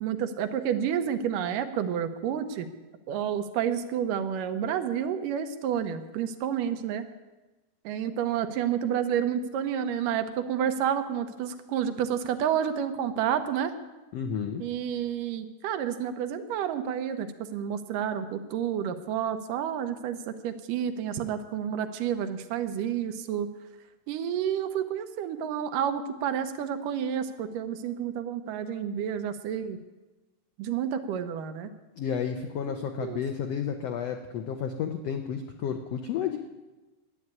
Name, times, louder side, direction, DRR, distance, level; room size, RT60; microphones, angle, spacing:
voice 1, 0.0-2.7 3.1-7.0 7.9-13.7 14.6-23.5 24.1-29.8 30.6-31.7 32.6-32.7 33.0-33.2, right 9 dB, 75° right, 9 dB, 2.3 m, -30 dB
voice 2, 14.1-14.6 32.0-36.4, left 7 dB, 90° left, 5 dB, 1.4 m, -31 dB
11.0 x 8.6 x 9.4 m, 1.1 s
omnidirectional pair, 4.0 m